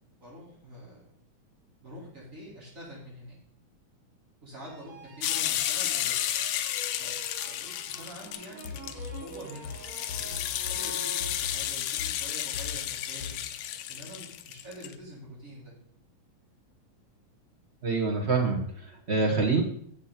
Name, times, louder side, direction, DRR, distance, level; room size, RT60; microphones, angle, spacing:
voice 1, 0.1-1.0 1.8-3.4 4.4-6.2 7.0-9.7 10.1-13.4 13.9-15.7, equal, 25° right, -7 dB, 5.3 m, -46 dB
sound 1, 4.6-11.8, right 3 dB, 65° right, 3.4 m, -47 dB
sound 2, 5.2-14.9, left 11 dB, 75° left, 1.5 m, -32 dB
sound 3, 8.3-11.7 12.0-13.4, left 6 dB, 55° left, 2.6 m, -41 dB
voice 2, 17.8-19.6, right 4 dB, 50° right, 1 dB, 0.7 m, -26 dB
12.0 x 7.5 x 4.4 m, 0.63 s
omnidirectional pair, 3.4 m